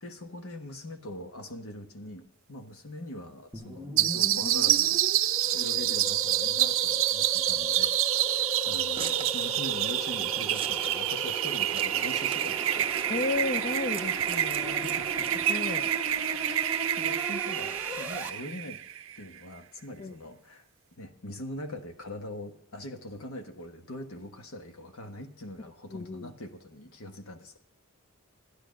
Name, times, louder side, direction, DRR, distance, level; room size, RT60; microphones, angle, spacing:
voice 1, 0.0-2.2 2.5-7.9 8.3-12.9 14.6-15.5 16.5-18.8 19.2-20.7 21.0-27.5, left 1 dB, 85° left, 6 dB, 1.4 m, -42 dB
sound 1, 3.5-18.3, equal, 10° right, 1.1 m, -38 dB
sound 2, 4.0-19.2, right 13 dB, 70° right, 0.5 m, -28 dB
Scissors, 5.2-15.8, right 8 dB, 25° right, 0.7 m, -44 dB
voice 2, 13.1-14.8 15.5-15.9 20.0-20.2 25.9-26.3, left 3 dB, 35° left, 12 dB, 0.4 m, -33 dB
13.0 x 10.0 x 5.1 m, 0.67 s
head